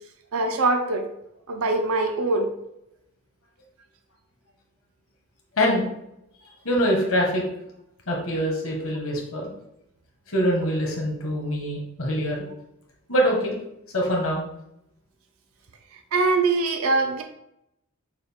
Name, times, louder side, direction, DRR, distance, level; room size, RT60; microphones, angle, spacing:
voice 1, 0.3-1.0 1.5-2.5 16.1-17.2, right 3 dB, 70° right, 5 dB, 0.6 m, -22 dB
voice 2, 5.6-5.9 6.6-7.4 8.1-9.5 10.3-12.4 13.1-13.5 13.9-14.4, equal, 65° left, -1 dB, 1.3 m, -24 dB
6.5 x 2.3 x 3.5 m, 0.80 s
head